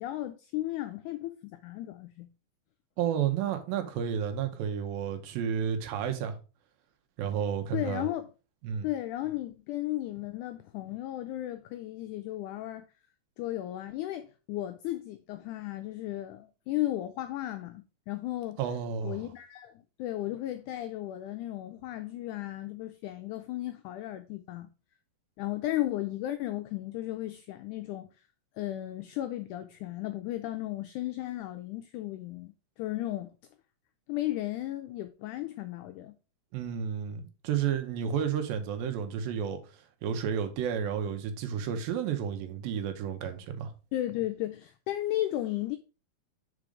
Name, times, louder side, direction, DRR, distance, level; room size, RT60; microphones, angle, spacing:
voice 1, 0.0-2.3 7.7-8.3 8.8-12.9 13.4-18.6 19.0-24.7 25.4-28.1 28.6-33.3 34.1-36.2 43.9-45.8, left 15 dB, 85° left, 1.7 m, -35 dB
voice 2, 3.0-6.3 7.2-8.1 8.6-8.9 18.6-19.2 36.5-39.6 40.0-43.7, right 8 dB, 85° right, 2.7 m, -31 dB
5.2 x 4.8 x 4.7 m
omnidirectional pair, 4.0 m